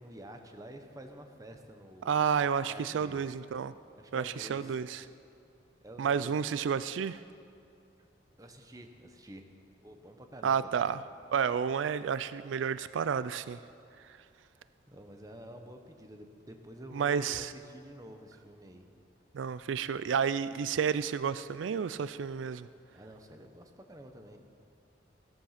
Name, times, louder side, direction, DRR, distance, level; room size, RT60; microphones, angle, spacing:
voice 1, 0.0-2.2 2.6-3.2 4.0-4.8 5.8-6.3 8.4-9.4 9.8-10.9 14.3-14.5 14.9-18.8 22.9-24.4, right 1 dB, 20° right, 1.0 m, -49 dB
voice 2, 2.0-3.7 4.1-5.0 6.0-7.2 10.4-11.0 11.3-13.6 16.9-17.5 19.3-22.7, right 7 dB, 80° right, 0.4 m, -31 dB
16.0 x 13.0 x 5.8 m
head